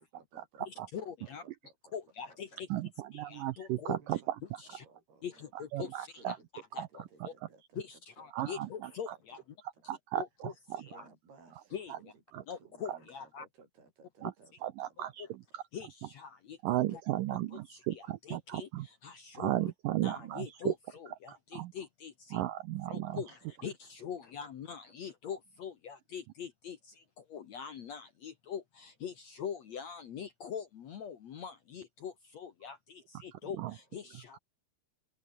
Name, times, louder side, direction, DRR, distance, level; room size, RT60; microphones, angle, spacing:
voice 1, 0.0-2.0 2.3-2.9 3.9-4.3 4.6-9.4 9.7-10.0 10.8-15.1 23.0-23.7 24.0-24.1 24.6-25.0, right 4 dB, 65° right, 9.9 m, -61 dB
voice 2, 0.7-1.4 1.9-2.5 3.1-4.0 4.6-4.8 5.2-6.4 6.7-7.3 7.8-9.4 10.2-11.0 11.7-11.9 12.5-13.4 15.7-16.8 17.9-19.6 20.0-20.7 21.2-22.4 22.9-34.4, left 7 dB, 60° left, 1.9 m, -43 dB
voice 3, 2.7-4.6 5.5-6.4 6.8-6.9 7.2-7.3 8.3-9.2 9.9-10.9 11.9-12.0 12.3-12.4 12.9-13.0 14.2-14.3 14.6-15.3 15.5-15.6 16.6-18.9 19.3-20.7 21.3-21.7 22.3-23.2 33.3-33.7 34.1-34.2, right 15 dB, 85° right, 1.9 m, -35 dB
open air
omnidirectional pair, 4.9 m